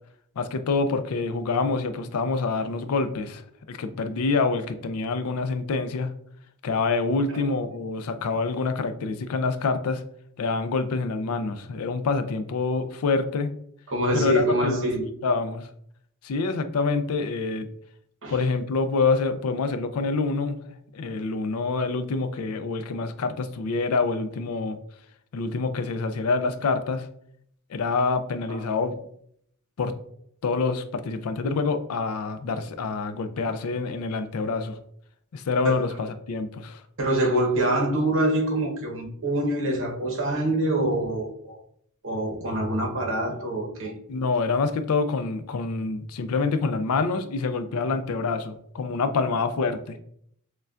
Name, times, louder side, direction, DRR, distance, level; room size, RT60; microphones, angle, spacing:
voice 1, 0.4-3.4 3.7-6.1 6.6-10.0 10.4-13.5 14.1-14.9 15.2-15.7 16.2-17.7 18.3-20.6 20.9-24.8 25.3-27.1 27.7-28.9 29.8-29.9 30.4-34.8 35.3-36.8 44.1-50.0, left 4 dB, 75° left, 10 dB, 0.4 m, -26 dB
voice 2, 13.9-15.0 18.2-18.4 28.5-28.6 35.6-35.8 37.0-41.6 42.0-43.9, right 1 dB, 60° right, 1 dB, 1.0 m, -25 dB
6.6 x 2.2 x 2.4 m, 0.68 s
head